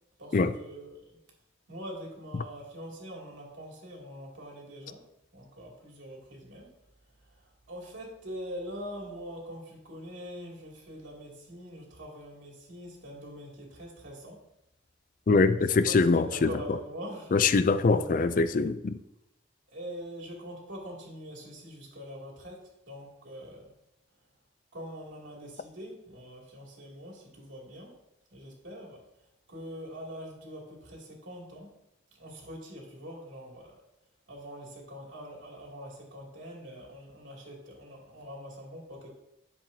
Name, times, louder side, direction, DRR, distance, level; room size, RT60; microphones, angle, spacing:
voice 1, 0.2-1.2 1.7-5.0 5.3-6.7 7.2-14.4 15.6-17.3 17.9-18.5 19.7-23.7 24.7-27.9 28.3-29.0 29.5-31.7 32.2-33.8 34.3-39.1, equal, 80° right, 2.7 m, -43 dB
voice 2, 15.3-16.5 17.3-19.0, left 4 dB, 45° left, 0.4 m, -23 dB
11.0 x 7.4 x 2.8 m
head